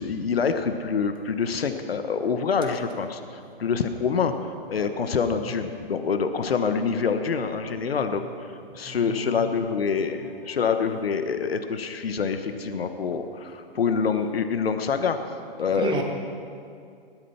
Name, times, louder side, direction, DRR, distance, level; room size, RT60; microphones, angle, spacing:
voice 1, 0.0-3.2 3.6-15.2 15.6-16.0, left 5 dB, 75° left, 7 dB, 1.3 m, -26 dB
voice 2, 8.7-9.3 15.7-16.0, right 4 dB, 15° right, 2 dB, 2.0 m, -33 dB
19.0 x 12.5 x 5.8 m, 2.4 s
hypercardioid pair, 130°, 30 cm